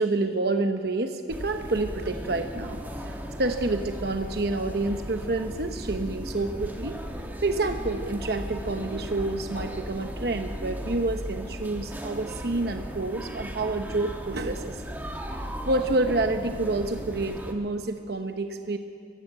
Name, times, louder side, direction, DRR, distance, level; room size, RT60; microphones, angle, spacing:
voice 1, 0.0-3.1 3.4-7.0 7.4-14.8 15.4-18.8, right 2 dB, 60° right, 6 dB, 0.9 m, -28 dB
sound 1, 1.3-17.5, equal, 10° right, 1.5 m, -36 dB
23.5 x 16.0 x 7.6 m, 2.4 s
head